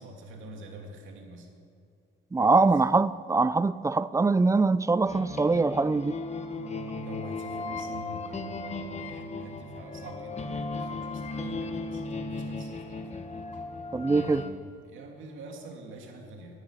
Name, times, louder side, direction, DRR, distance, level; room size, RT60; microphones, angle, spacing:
voice 1, 0.0-1.6 2.5-2.7 6.5-13.3 14.1-16.6, right 1 dB, 80° right, 2.6 m, -45 dB
voice 2, 2.3-6.2 13.9-14.4, right 3 dB, 15° right, 0.5 m, -23 dB
sound 1, 5.1-14.5, left 3 dB, 35° left, 1.3 m, -36 dB
11.0 x 11.0 x 9.9 m
cardioid pair, 90°, 20 cm